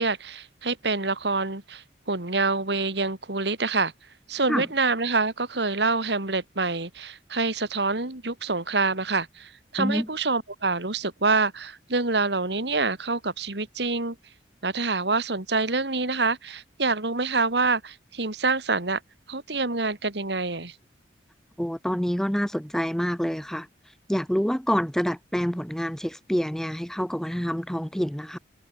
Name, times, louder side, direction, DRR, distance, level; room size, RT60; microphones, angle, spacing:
voice 1, 0.0-3.9 4.3-14.2 14.6-19.0 19.3-20.7, right 3 dB, 70° right, 2.6 m, -26 dB
voice 2, 9.8-10.1 21.6-28.4, equal, 5° left, 0.7 m, -27 dB
head